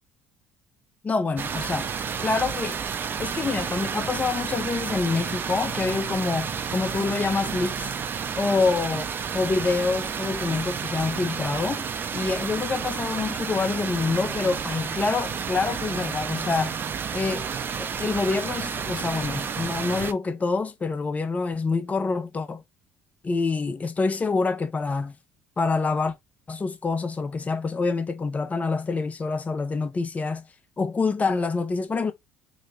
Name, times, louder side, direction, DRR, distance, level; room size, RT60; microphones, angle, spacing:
voice 1, 1.0-1.9 2.2-2.8 3.2-7.9 8.4-9.1 9.3-11.8 12.1-16.8 17.1-22.6 23.2-25.2 25.6-26.1 26.5-30.4 30.8-32.1, left 4 dB, 25° left, 0.7 m, -26 dB
sound 1, 1.4-20.1, right 6 dB, 40° right, 0.5 m, -31 dB
3.1 x 2.1 x 3.9 m
hypercardioid pair, 60°, 6 cm